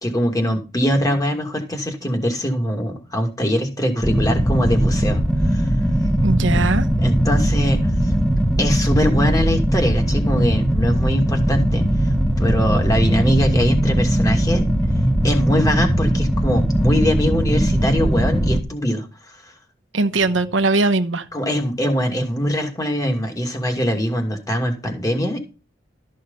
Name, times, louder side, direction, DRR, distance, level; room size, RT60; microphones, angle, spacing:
voice 1, 0.0-5.7 7.0-8.1 8.6-14.7 15.2-19.5 21.3-25.5, equal, 20° left, 2.5 m, -22 dB
sound 1, 4.0-18.6, equal, ahead, 1.6 m, -19 dB
voice 2, 6.2-6.9 19.9-21.3, right 3 dB, 80° right, 1.0 m, -20 dB
13.5 x 6.5 x 5.6 m
head